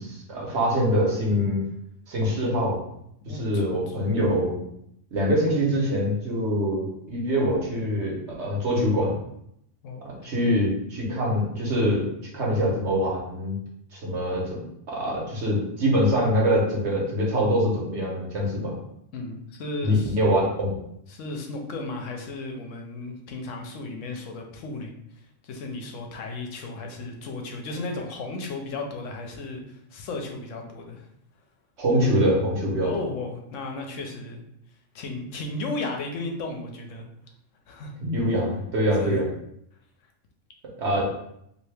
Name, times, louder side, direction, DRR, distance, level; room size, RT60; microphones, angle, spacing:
voice 1, 0.0-1.6 2.1-2.8 3.3-4.5 5.1-9.1 10.0-12.0 12.3-13.6 13.9-14.6 14.9-18.8 19.8-20.7 31.8-32.9 38.0-39.3 40.8-41.0, equal, 65° right, -2 dB, 1.2 m, -24 dB
voice 2, 3.2-4.0 9.8-10.5 19.1-20.2 21.1-31.1 32.8-34.4 34.9-37.1 37.7-37.9 39.0-39.2, left 2 dB, 75° left, 2 dB, 1.0 m, -35 dB
2.8 x 2.7 x 3.3 m, 0.75 s
omnidirectional pair, 1.3 m